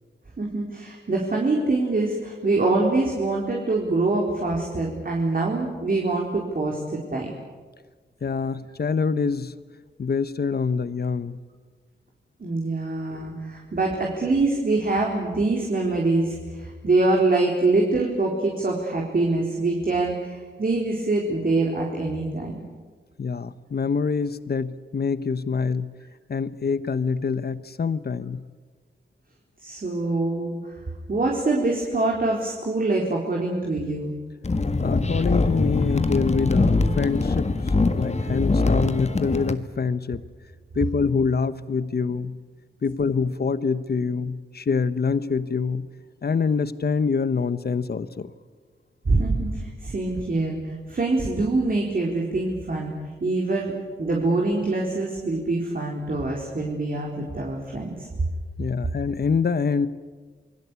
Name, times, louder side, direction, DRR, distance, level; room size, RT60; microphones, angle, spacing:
voice 1, 0.4-6.8 7.1-7.3 12.4-22.6 29.6-30.5 31.1-34.1 49.0-50.6 50.9-52.9 53.2-53.7 54.0-57.9, right 2 dB, 50° right, -1 dB, 4.2 m, -24 dB
voice 2, 8.2-9.5 10.0-11.4 23.2-25.9 26.3-28.4 34.8-40.2 40.7-42.3 42.8-45.9 46.2-48.3 58.6-59.9, left 5 dB, 55° left, 14 dB, 1.2 m, -25 dB
sound 1, 34.4-39.5, left 3 dB, 35° left, 1.7 m, -22 dB
28.5 x 21.5 x 8.4 m, 1.4 s
wide cardioid pair, 95°, 19 cm